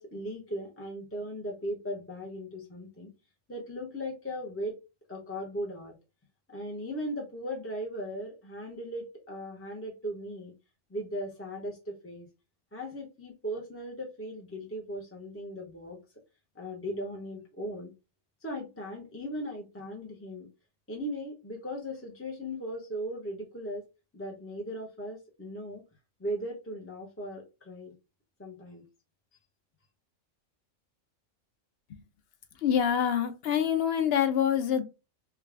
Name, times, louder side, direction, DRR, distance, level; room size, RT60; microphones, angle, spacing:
voice 1, 0.0-3.1 3.5-4.8 5.1-5.9 6.5-10.5 10.9-12.3 12.7-16.0 16.5-17.9 18.4-20.5 20.9-23.8 24.1-25.8 26.2-27.9 28.4-28.8, equal, 15° left, 0.5 m, -38 dB
voice 2, 32.6-34.8, left 9 dB, 60° left, 0.7 m, -26 dB
3.6 x 2.3 x 3.3 m
omnidirectional pair, 1.3 m